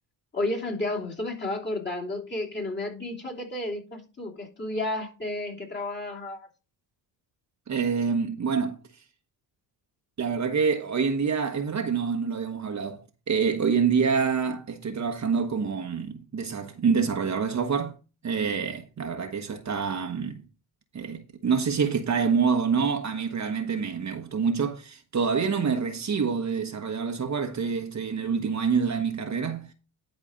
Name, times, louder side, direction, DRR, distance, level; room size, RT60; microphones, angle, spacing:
voice 1, 0.3-6.5, left 2 dB, 25° left, 3.0 m, -32 dB
voice 2, 7.7-8.8 10.2-18.0 18.2-20.4 20.9-29.7, right 6 dB, 35° right, 1.2 m, -26 dB
11.0 x 4.4 x 5.2 m
cardioid pair, 90°, 46 cm